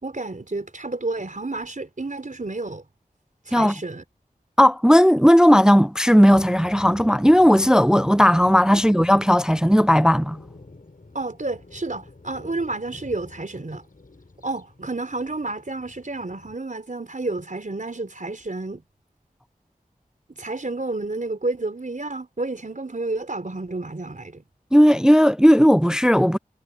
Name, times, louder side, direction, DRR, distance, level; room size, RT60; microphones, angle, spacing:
voice 1, 0.0-2.8 3.5-4.0 11.1-13.8 14.4-18.8 20.4-24.4, right 2 dB, 55° right, 4.4 m, -30 dB
voice 2, 4.6-10.4 24.7-26.4, equal, 5° right, 0.3 m, -16 dB
sound 1, 6.3-16.5, left 2 dB, 65° left, 6.7 m, -46 dB
wide cardioid pair, 50°, 15 cm